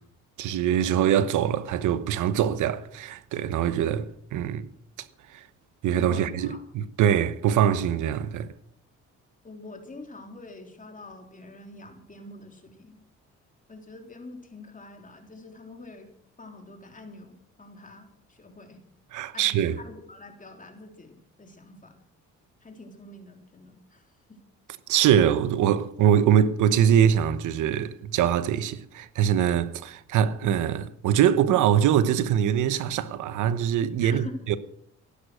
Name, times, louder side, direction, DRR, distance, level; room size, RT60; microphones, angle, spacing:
voice 1, 0.4-4.7 5.3-5.5 5.8-8.5 19.1-19.8 24.9-34.6, right 9 dB, 85° right, 1.0 m, -23 dB
voice 2, 5.9-6.6 9.4-13.0 13.7-16.1 16.4-18.8 19.3-22.0 22.6-24.4 34.0-34.4, left 2 dB, 25° left, 3.6 m, -45 dB
15.5 x 11.5 x 6.3 m
cardioid pair, 90°, 30 cm